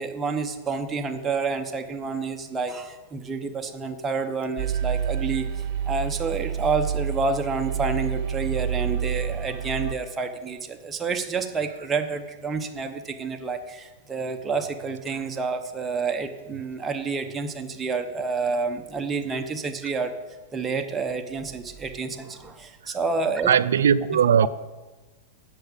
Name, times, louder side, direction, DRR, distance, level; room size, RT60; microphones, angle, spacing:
voice 1, 0.0-5.5 5.8-20.1 20.5-23.5 24.4-24.5, right 4 dB, 20° right, 5 dB, 0.9 m, -29 dB
sound 1, 4.6-9.9, right 8 dB, 50° right, 0.6 m, -28 dB
voice 2, 23.5-24.5, right 8 dB, 85° right, 16 dB, 0.3 m, -19 dB
7.8 x 5.9 x 7.2 m, 1.2 s
hypercardioid pair, 125°, 0 cm